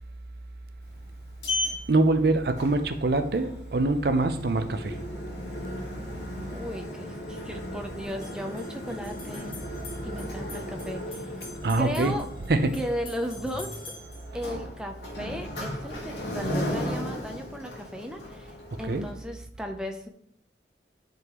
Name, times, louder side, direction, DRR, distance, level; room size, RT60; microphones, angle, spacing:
Sliding door, 0.8-19.1, left 1 dB, 75° left, 1.6 m, -36 dB
voice 1, 1.9-4.9 11.6-12.1 12.5-12.8 18.9-19.0, right 2 dB, 55° right, 0.5 m, -24 dB
voice 2, 6.5-9.5 10.0-11.3 11.8-12.2 12.7-13.8 14.3-20.1, equal, 5° right, 0.5 m, -36 dB
sound 1, 8.0-14.3, left 3 dB, 30° left, 1.8 m, -47 dB
11.0 x 3.8 x 3.0 m
head